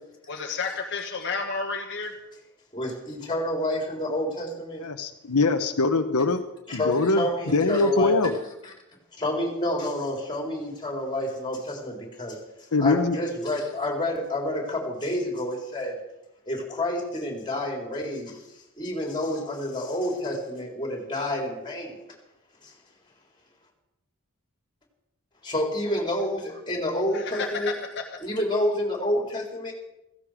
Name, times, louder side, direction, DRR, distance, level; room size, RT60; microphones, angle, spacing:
voice 1, 0.3-2.1 27.1-28.0, left 4 dB, 55° left, 1 dB, 1.4 m, -31 dB
voice 2, 2.7-4.8 6.7-8.2 8.6-8.7 9.2-12.4 12.8-16.0 16.5-18.5 18.8-22.0 22.6-22.7 25.4-27.7 28.2-29.8, left 1 dB, 20° left, 1 dB, 4.0 m, -29 dB
voice 3, 4.8-6.4 6.7-8.3 12.7-13.2, left 3 dB, 85° left, 6 dB, 1.0 m, -23 dB
16.0 x 16.0 x 5.1 m, 0.88 s
head